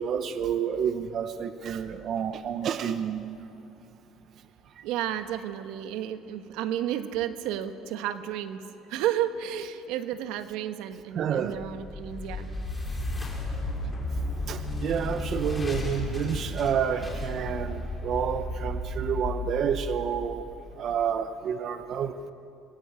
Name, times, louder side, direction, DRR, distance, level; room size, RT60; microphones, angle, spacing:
voice 1, 0.0-3.2 11.2-11.5 14.5-20.4 20.8-22.1, right 8 dB, 45° right, 10 dB, 0.9 m, -29 dB
voice 2, 4.8-12.5, right 11 dB, 85° right, 9 dB, 1.3 m, -32 dB
sound 1, 11.5-20.7, left 1 dB, 10° left, 4.4 m, -33 dB
26.0 x 20.0 x 8.2 m, 2.8 s
cardioid pair, 135°, 0 cm